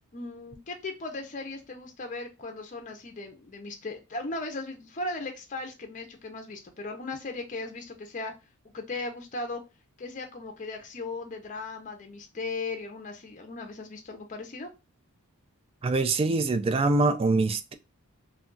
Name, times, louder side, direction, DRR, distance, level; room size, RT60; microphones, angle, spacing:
voice 1, 0.1-8.3 8.7-9.6 10.0-14.7, left 3 dB, 35° left, 0.5 m, -37 dB
voice 2, 15.8-17.7, right 3 dB, 25° right, 0.3 m, -24 dB
2.3 x 2.2 x 3.7 m
head